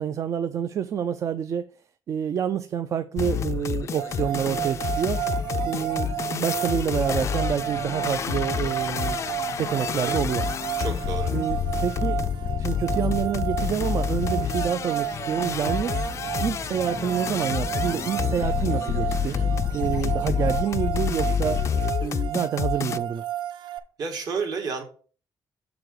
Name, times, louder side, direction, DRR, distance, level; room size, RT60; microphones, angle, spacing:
voice 1, 0.0-1.7 2.1-5.2 5.6-9.2 9.6-10.4 11.3-12.2 12.6-16.1 16.4-19.4 19.7-21.6 22.0-23.2, right 8 dB, 40° right, 0.3 m, -28 dB
sound 1, 3.2-23.0, left 8 dB, 40° left, 0.3 m, -28 dB
sound 2, 4.0-23.8, right 13 dB, 85° right, 0.6 m, -32 dB
sound 3, 4.1-20.5, right 2 dB, 25° right, 1.3 m, -42 dB
voice 2, 10.0-10.3 10.8-11.3 21.2-21.6 24.0-24.8, right 5 dB, 60° right, 1.8 m, -32 dB
6.9 x 3.8 x 6.4 m
cardioid pair, 175°, 8 cm